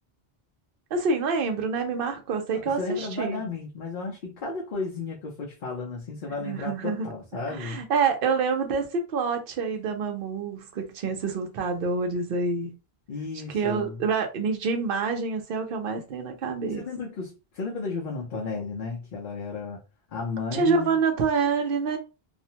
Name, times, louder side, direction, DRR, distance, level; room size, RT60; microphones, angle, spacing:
voice 1, 0.9-3.4 6.4-7.1 7.5-12.7 13.5-16.8 20.5-22.0, right 4 dB, 65° right, 0.8 m, -27 dB
voice 2, 2.5-7.8 13.1-14.0 16.7-19.8 20.1-21.0, left 4 dB, 60° left, 0.7 m, -34 dB
2.5 x 2.1 x 2.7 m
omnidirectional pair, 1.0 m